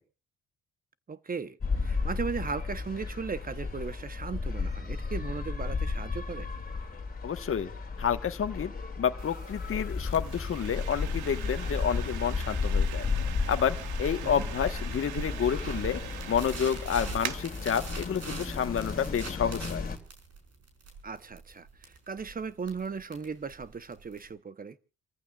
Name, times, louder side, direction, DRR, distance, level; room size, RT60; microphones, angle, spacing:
voice 1, 1.1-6.5 14.2-14.4 21.0-24.8, right 5 dB, 30° right, 0.9 m, -37 dB
sound 1, 1.6-20.0, left 4 dB, 30° left, 2.8 m, -34 dB
voice 2, 7.2-7.7 8.0-13.1 13.5-16.0 16.3-19.9, left 8 dB, 45° left, 1.4 m, -30 dB
sound 2, 9.2-19.2, right 11 dB, 85° right, 1.2 m, -43 dB
sound 3, 15.2-24.3, right 4 dB, 55° right, 5.2 m, -43 dB
29.0 x 14.5 x 2.4 m
cardioid pair, 90°, 30 cm